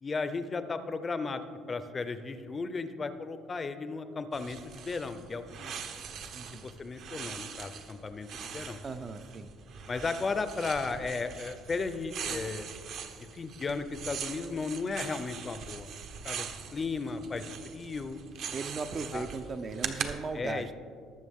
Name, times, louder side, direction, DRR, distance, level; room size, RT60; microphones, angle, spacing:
voice 1, 0.0-1.4 1.7-4.6 4.8-5.7 6.6-8.3 8.5-8.8 9.9-12.7 13.3-15.9 16.2-16.5 16.7-17.4 17.7-18.2 19.1-19.3 20.3-20.7, left 4 dB, 20° left, 10 dB, 0.5 m, -35 dB
sound 1, 4.3-20.1, right 7 dB, 50° right, 0.8 m, -42 dB
voice 2, 6.3-6.7 8.8-9.5 18.5-20.7, right 4 dB, 30° right, 9 dB, 0.4 m, -37 dB
19.5 x 6.9 x 3.6 m, 2.2 s
cardioid pair, 150°, 0 cm